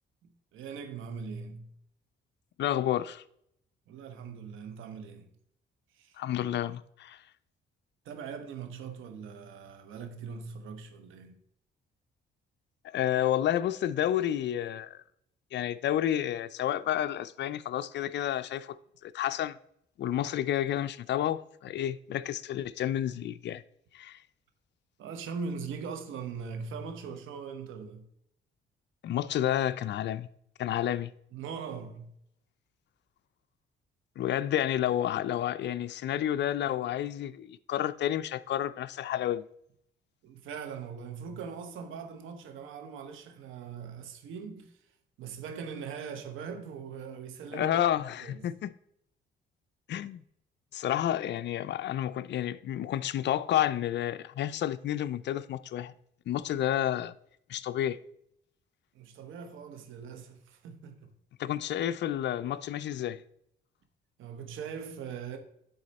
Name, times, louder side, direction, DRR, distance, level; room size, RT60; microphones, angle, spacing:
voice 1, 0.5-1.7 3.9-5.3 5.9-6.2 8.0-11.4 25.0-28.0 31.3-32.1 40.2-44.7 45.2-47.8 48.2-48.5 58.9-61.1 64.2-65.4, right 6 dB, 85° right, 1.1 m, -41 dB
voice 2, 2.6-3.2 6.2-7.2 12.9-15.0 15.5-18.8 19.0-19.6 20.0-23.6 23.9-24.2 29.0-30.3 30.6-31.1 34.2-39.4 47.5-48.7 49.9-50.2 50.7-55.9 56.3-57.1 57.5-58.0 61.4-63.2, left 11 dB, 60° left, 0.5 m, -30 dB
10.5 x 4.2 x 4.2 m
cardioid pair, 90°, 20 cm